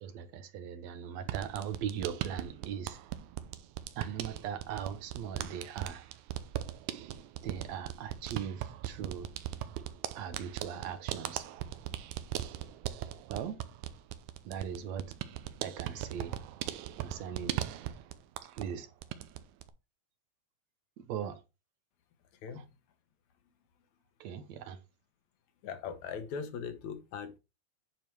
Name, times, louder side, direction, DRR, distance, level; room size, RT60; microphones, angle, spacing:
voice 1, 0.0-3.0 4.0-6.0 7.4-9.3 10.2-11.5 13.3-13.6 14.4-15.1 15.6-16.4 17.0-17.6 18.4-18.9 21.0-21.4 22.5-22.7 24.2-24.8, right 8 dB, 70° right, 1.9 m, -39 dB
sound 1, 1.2-18.8 19.0-19.7, right 12 dB, 90° right, 2.2 m, -39 dB
voice 2, 25.6-27.4, left 6 dB, 75° left, 2.3 m, -40 dB
9.0 x 4.5 x 4.6 m
omnidirectional pair, 3.3 m